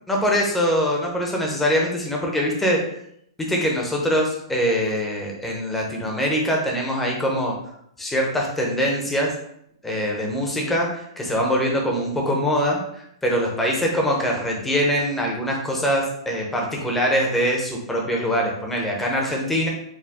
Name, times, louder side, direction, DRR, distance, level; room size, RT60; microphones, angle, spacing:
voice 1, 0.1-3.0 3.5-7.5 8.0-9.3 9.8-19.7, equal, 5° left, -1 dB, 0.7 m, -23 dB
4.7 x 2.2 x 3.5 m, 0.72 s
hypercardioid pair, 160°, 3 cm